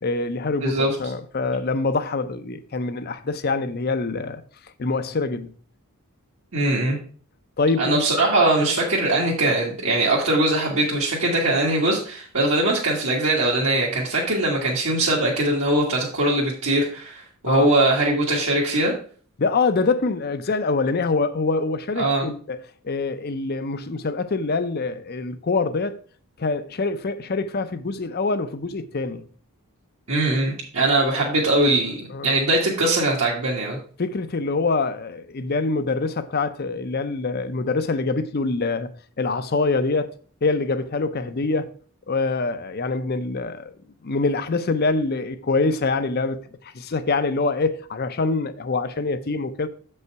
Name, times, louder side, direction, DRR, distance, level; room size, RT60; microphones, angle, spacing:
voice 1, 0.0-4.4 4.8-5.5 7.6-8.0 17.5-17.7 19.4-26.0 26.4-29.2 32.1-32.3 34.0-38.9 39.2-40.1 40.4-41.7 42.1-43.7 44.0-46.4 46.7-49.7, left 3 dB, 45° left, 0.6 m, -25 dB
voice 2, 0.6-0.9 6.5-7.0 7.8-18.9 22.0-22.3 30.1-33.8, right 2 dB, 70° right, 1.6 m, -21 dB
7.0 x 5.5 x 4.6 m
head